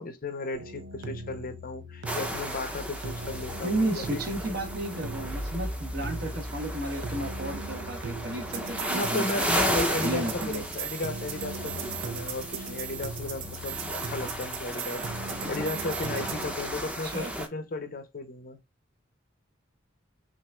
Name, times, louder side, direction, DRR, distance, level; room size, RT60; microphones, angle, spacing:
voice 1, 0.0-4.4 8.9-15.1 15.5-18.6, left 2 dB, 45° left, 0.6 m, -35 dB
sound 1, 0.5-16.5, right 4 dB, 70° right, 0.7 m, -39 dB
sound 2, 2.1-17.5, equal, 5° right, 0.7 m, -34 dB
voice 2, 3.6-9.5 10.0-10.6 17.0-17.3, right 1 dB, 55° right, 1.2 m, -33 dB
5.9 x 2.5 x 2.3 m
head